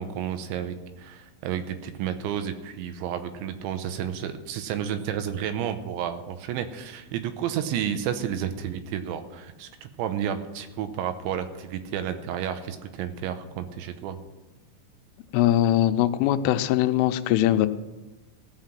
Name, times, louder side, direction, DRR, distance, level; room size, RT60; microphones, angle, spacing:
voice 1, 0.0-14.2, right 9 dB, 80° right, 9 dB, 3.1 m, -31 dB
voice 2, 15.3-17.7, left 12 dB, 90° left, 10 dB, 3.2 m, -21 dB
16.5 x 5.8 x 9.0 m, 1.1 s
omnidirectional pair, 5.6 m